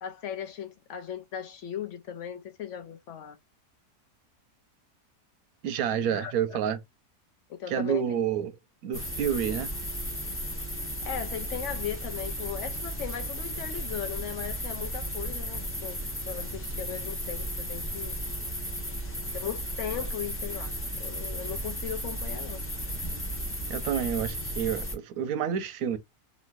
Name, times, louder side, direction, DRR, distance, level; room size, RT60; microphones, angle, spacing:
voice 1, 0.0-3.4 6.1-6.6 7.5-8.0 11.0-16.0 16.3-18.2 19.3-20.7 21.0-22.6, left 9 dB, 70° left, 0.7 m, -37 dB
voice 2, 5.6-6.8 7.7-8.6 8.8-9.7 23.7-26.0, right 8 dB, 70° right, 1.0 m, -29 dB
sound 1, 8.9-24.9, equal, 10° left, 0.6 m, -34 dB
3.0 x 2.7 x 2.4 m
omnidirectional pair, 1.8 m